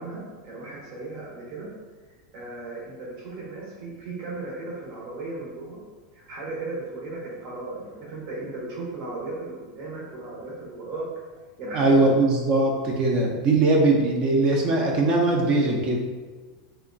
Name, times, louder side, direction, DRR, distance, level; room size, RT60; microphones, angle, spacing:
voice 1, 0.0-1.7 2.3-5.8 6.1-11.1 11.6-11.9, right 2 dB, 60° right, -4 dB, 1.0 m, -36 dB
voice 2, 11.7-16.0, right 2 dB, 40° right, 0 dB, 0.7 m, -20 dB
3.4 x 2.8 x 2.6 m, 1.4 s
hypercardioid pair, 110°, 2 cm